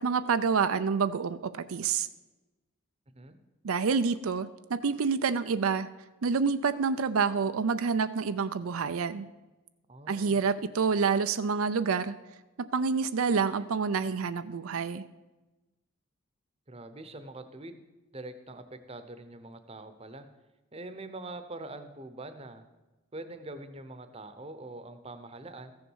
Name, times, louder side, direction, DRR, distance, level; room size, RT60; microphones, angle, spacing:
voice 1, 0.0-2.1 3.6-5.9 6.2-9.3 10.1-12.1 12.6-15.0, right 5 dB, 85° right, 11 dB, 0.5 m, -28 dB
voice 2, 9.9-10.4 16.7-17.8 18.1-20.3 20.7-22.6 23.1-25.7, right 2 dB, 30° right, 9 dB, 0.8 m, -44 dB
14.5 x 7.0 x 6.3 m, 1.1 s
head